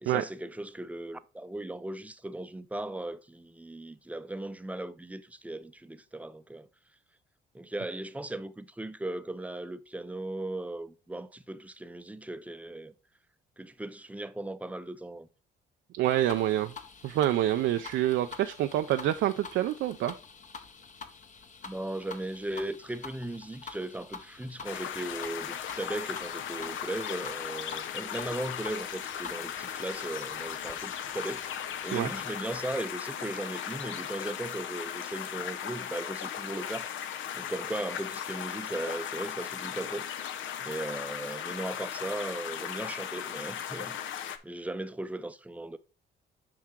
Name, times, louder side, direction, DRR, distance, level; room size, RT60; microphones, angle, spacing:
voice 1, 0.0-6.7 7.5-12.9 13.6-15.3 21.6-36.9 37.3-45.8, right 1 dB, 5° right, 0.5 m, -37 dB
voice 2, 15.9-16.7 17.0-20.1 31.9-32.1, right 13 dB, 75° right, 0.4 m, -27 dB
sound 1, 16.0-32.7, left 5 dB, 40° left, 0.9 m, -48 dB
sound 2, 24.6-44.4, left 9 dB, 75° left, 0.6 m, -37 dB
7.4 x 4.8 x 3.7 m
cardioid pair, 90°, 20 cm